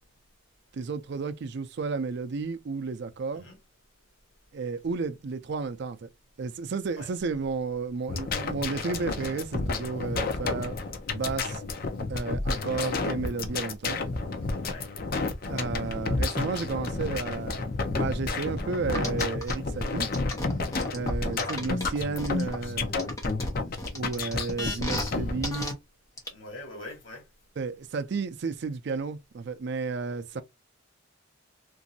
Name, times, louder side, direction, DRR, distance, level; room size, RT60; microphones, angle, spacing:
voice 1, 0.7-3.5 4.5-6.1 6.4-10.7 11.1-11.6 12.1-14.0 15.5-17.6 17.9-20.1 20.9-22.9 23.9-25.7 27.6-30.4, right 4 dB, 55° right, 0.4 m, -32 dB
sound 1, 8.1-25.5, left 3 dB, 45° left, 0.6 m, -31 dB
sound 2, 18.9-19.5 20.1-22.6 23.0-25.1 25.4-25.7 26.2-26.3, left 1 dB, 15° left, 0.9 m, -33 dB
voice 2, 21.7-23.0 24.3-25.4 26.3-27.3 30.3-30.4, left 2 dB, 65° left, 1.4 m, -45 dB
3.0 x 2.6 x 2.6 m
head